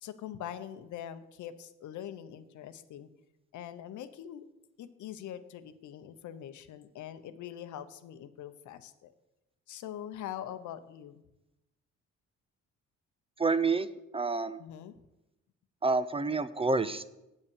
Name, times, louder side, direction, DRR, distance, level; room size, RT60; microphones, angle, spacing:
voice 1, 0.0-3.1 3.5-4.5 4.8-9.1 9.7-11.2 14.6-15.0, left 10 dB, 75° left, 12 dB, 0.8 m, -43 dB
voice 2, 13.4-13.9 14.1-14.6 15.8-17.0, right 3 dB, 20° right, 14 dB, 0.4 m, -28 dB
8.2 x 5.4 x 7.0 m, 0.93 s
cardioid pair, 90°, 30 cm